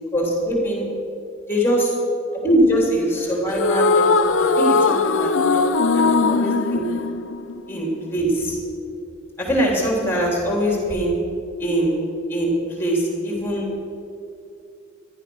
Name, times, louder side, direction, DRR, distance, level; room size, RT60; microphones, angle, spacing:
voice 1, 0.1-0.9 1.5-1.9 2.4-6.9 7.6-8.6 9.4-11.2 11.6-12.0 12.3-13.7, right 1 dB, 10° left, -2 dB, 3.4 m, -22 dB
sound 1, 3.5-7.9, left 4 dB, 75° left, 0.6 m, -19 dB
14.0 x 12.0 x 6.3 m, 2.6 s
head